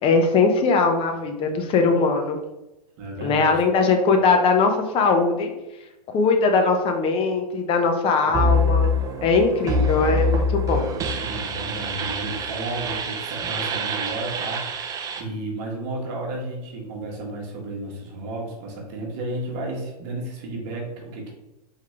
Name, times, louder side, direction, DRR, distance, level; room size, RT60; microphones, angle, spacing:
voice 1, 0.0-2.4 3.2-5.5 6.1-8.9 9.2-10.9, left 4 dB, 25° left, 4 dB, 0.6 m, -20 dB
voice 2, 3.0-3.6 8.2-8.5 11.2-21.3, right 2 dB, 45° right, -1 dB, 1.4 m, -33 dB
sound 1, 8.3-15.2, left 1 dB, 20° right, 0.4 m, -25 dB
3.7 x 3.2 x 3.3 m, 0.95 s
hypercardioid pair, 125°, 20 cm